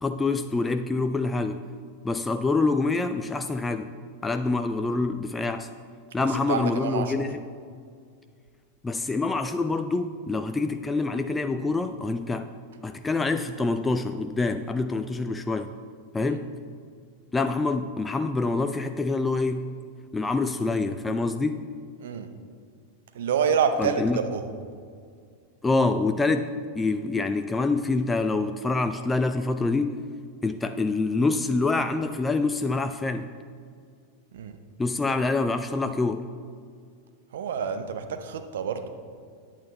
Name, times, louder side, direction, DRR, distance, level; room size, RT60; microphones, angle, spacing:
voice 1, 0.0-1.6 2.0-3.9 4.2-5.7 6.1-7.4 8.8-12.5 12.8-15.7 16.1-16.5 17.3-19.6 20.1-21.6 23.8-24.2 25.6-26.5 26.8-30.0 30.4-33.3 34.8-36.3, left 3 dB, 10° left, 9 dB, 0.3 m, -26 dB
voice 2, 6.2-7.3 16.2-16.4 22.0-22.3 23.1-24.4 34.3-34.6 37.3-38.9, right 6 dB, 60° right, 8 dB, 0.7 m, -28 dB
8.8 x 8.6 x 3.9 m, 2.1 s
figure-of-eight pair, 90°, 0 cm